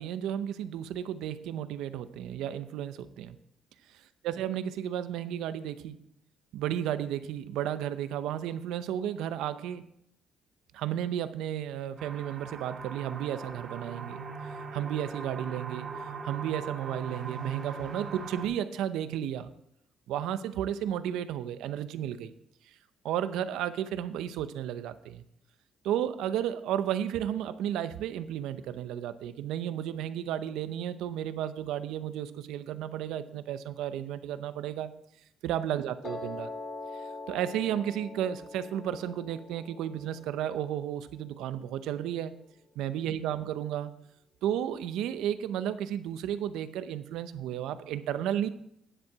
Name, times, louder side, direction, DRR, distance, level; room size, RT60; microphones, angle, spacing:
voice 1, 0.0-3.4 4.2-6.0 6.5-9.8 10.7-14.2 14.7-15.9 16.2-19.5 20.1-22.3 23.0-25.2 25.8-34.9 35.4-36.5 37.3-42.3 42.8-43.9 44.4-48.5, right 10 dB, 85° right, 12 dB, 0.7 m, -33 dB
sound 1, 12.0-18.5, right 5 dB, 30° right, 1.7 m, -40 dB
Piano, 36.0-42.2, left 3 dB, 40° left, 2.5 m, -44 dB
10.0 x 7.9 x 4.7 m, 0.74 s
cardioid pair, 125°, 0 cm